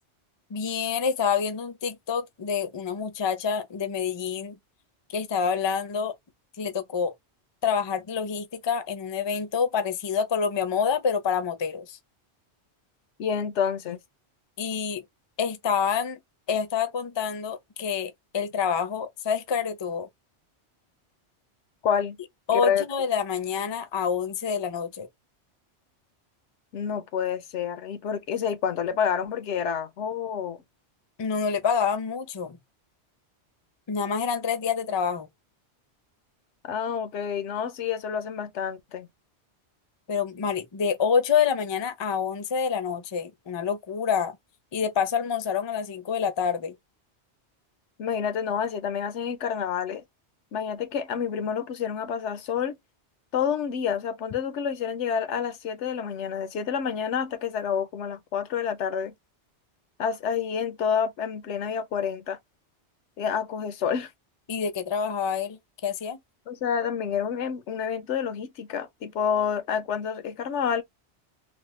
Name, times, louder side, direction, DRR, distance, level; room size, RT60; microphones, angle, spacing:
voice 1, 0.5-4.5 5.1-6.1 6.6-7.1 7.6-12.0 14.6-15.0 15.4-16.2 16.5-20.1 22.5-25.1 31.2-32.6 33.9-35.3 40.1-44.4 44.7-46.7 64.5-66.2, left 6 dB, 35° left, 0.4 m, -27 dB
voice 2, 13.2-14.0 21.8-22.2 22.5-22.8 26.7-30.6 36.6-39.1 48.0-50.0 50.5-52.8 53.3-59.1 60.0-62.4 63.2-64.1 66.5-70.8, left 7 dB, 80° left, 1.0 m, -28 dB
3.2 x 2.1 x 3.0 m
omnidirectional pair, 1.2 m